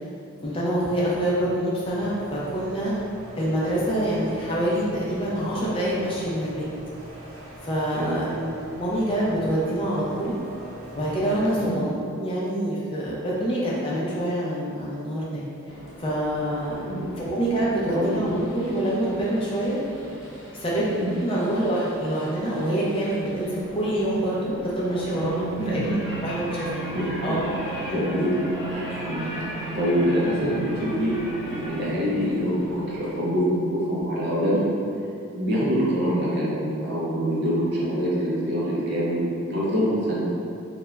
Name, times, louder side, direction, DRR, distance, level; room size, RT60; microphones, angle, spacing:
voice 1, 0.4-2.9 3.4-6.7 7.6-8.5 8.7-10.4 10.9-11.9 12.2-15.4 16.0-16.8 17.2-19.8 20.6-20.8 21.2-26.9 27.2-27.5, right 1 dB, 25° left, -6 dB, 0.4 m, -26 dB
sound 1, 1.8-11.8, right 1 dB, 80° right, 0.8 m, -43 dB
sound 2, 15.6-33.2, equal, 55° left, 0.7 m, -43 dB
voice 2, 16.8-17.2 17.9-18.2 21.0-21.1 25.6-25.7 26.6-27.4 27.9-28.3 28.6-31.2 31.5-34.7 35.3-40.2, equal, 50° right, -7 dB, 0.5 m, -25 dB
sound 3, 24.7-31.8, right 3 dB, 10° right, 1.1 m, -34 dB
2.3 x 2.1 x 3.0 m, 2.5 s
head